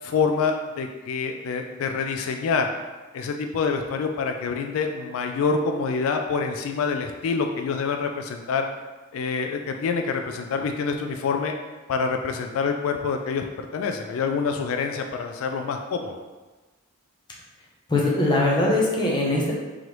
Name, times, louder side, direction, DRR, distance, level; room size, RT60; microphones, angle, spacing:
voice 1, 0.0-2.7 3.1-8.7 9.1-11.5 11.9-16.2, left 5 dB, 80° left, 5 dB, 0.3 m, -26 dB
voice 2, 17.9-19.5, left 2 dB, 20° left, -4 dB, 0.7 m, -21 dB
3.8 x 3.1 x 3.1 m, 1.3 s
head